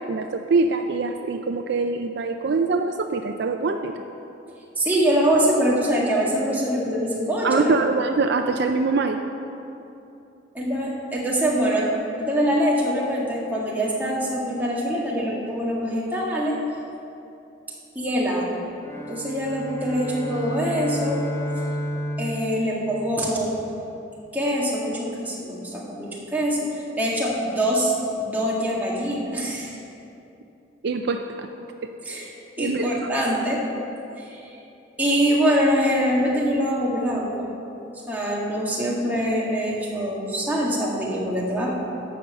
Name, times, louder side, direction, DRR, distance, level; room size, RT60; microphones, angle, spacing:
voice 1, 0.0-3.9 7.4-9.2 30.8-31.5 32.1-32.2 32.6-33.1, right 4 dB, 55° right, 5 dB, 0.4 m, -24 dB
voice 2, 4.8-7.8 10.5-11.8 12.2-16.5 17.9-18.6 19.1-21.2 22.2-23.5 24.3-27.9 28.2-29.7 32.0-32.3 32.6-33.6 34.2-34.5 35.0-37.5 38.1-41.8, equal, 10° right, -5 dB, 1.7 m, -24 dB
sound 1, 18.8-23.5, equal, 15° left, 0.6 m, -31 dB
12.0 x 5.5 x 7.7 m, 2.8 s
head